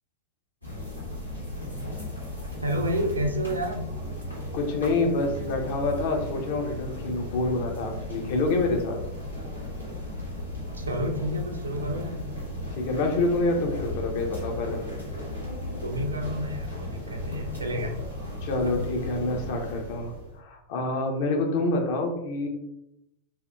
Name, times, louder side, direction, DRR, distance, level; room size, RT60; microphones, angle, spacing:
sound 1, 0.6-20.4, left 1 dB, 85° left, 0.7 m, -35 dB
voice 1, 2.6-3.9 10.7-12.2 15.8-17.9 18.6-18.8, equal, 80° right, 3 dB, 0.4 m, -30 dB
voice 2, 4.5-9.0 12.8-14.8 18.4-22.5, left 2 dB, 50° left, 3 dB, 0.5 m, -27 dB
2.6 x 2.2 x 2.2 m, 0.84 s
figure-of-eight pair, 90°, 0 cm